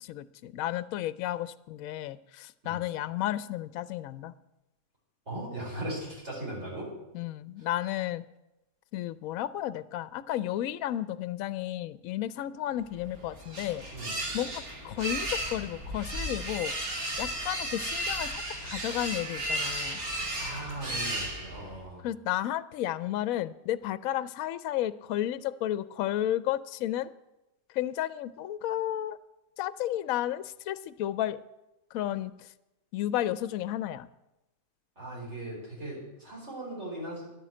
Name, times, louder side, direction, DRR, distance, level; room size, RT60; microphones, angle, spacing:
voice 1, 0.0-4.3 7.1-8.2 8.9-13.8 14.3-16.7 17.2-20.0 22.0-27.1 27.7-29.2 29.6-31.4 31.9-32.5 32.9-34.1, left 12 dB, 75° left, 15 dB, 1.0 m, -32 dB
voice 2, 5.2-6.9 7.6-7.7 13.9-14.2 20.4-22.1 34.9-37.2, right 1 dB, 50° right, -5 dB, 4.9 m, -38 dB
sound 1, 12.9-21.8, right 1 dB, 80° right, 2.9 m, -34 dB
11.0 x 9.2 x 7.5 m, 0.95 s
omnidirectional pair, 1.5 m